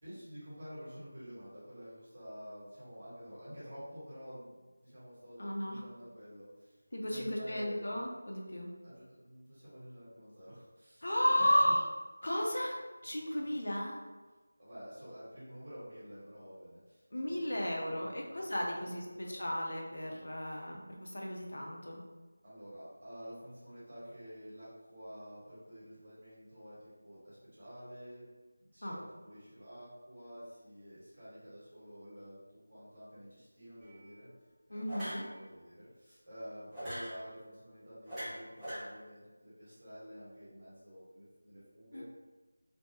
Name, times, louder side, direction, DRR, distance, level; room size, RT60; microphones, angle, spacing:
voice 1, 0.0-5.4 5.7-6.8 7.1-8.0 8.8-11.7 13.4-13.6 14.6-17.6 17.9-18.5 18.8-19.4 22.4-28.3 28.6-34.3 34.7-42.0, equal, 35° right, -10 dB, 1.3 m, -50 dB
voice 2, 5.4-5.8 6.9-8.7 11.0-11.9 12.2-12.8 13.0-14.0 17.1-22.0 28.8-29.0 34.7-35.2 41.9-42.0, equal, 70° left, -1 dB, 0.6 m, -33 dB
sound 1, 33.8-34.1 34.9-35.3 36.7-37.1 38.1-38.8, equal, 5° right, 0.7 m, -41 dB
3.2 x 2.1 x 2.8 m, 1.3 s
figure-of-eight pair, 175°, 0 cm